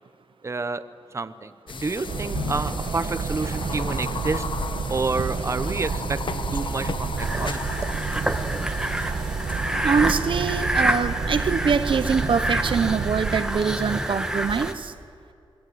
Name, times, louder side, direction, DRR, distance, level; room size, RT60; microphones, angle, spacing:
voice 1, 0.4-0.8 1.1-4.5 4.9-7.6, right 3 dB, 30° right, 12 dB, 0.9 m, -29 dB
sound 1, 1.7-11.0, left 5 dB, 60° left, 1.3 m, -35 dB
sound 2, 2.1-13.4, right 5 dB, 80° right, 1.1 m, -30 dB
sound 3, 7.2-14.7, right 1 dB, 5° right, 1.7 m, -28 dB
voice 2, 9.8-14.9, right 6 dB, 65° right, 12 dB, 0.8 m, -24 dB
27.5 x 21.0 x 9.4 m, 2.5 s
wide cardioid pair, 140°, 9 cm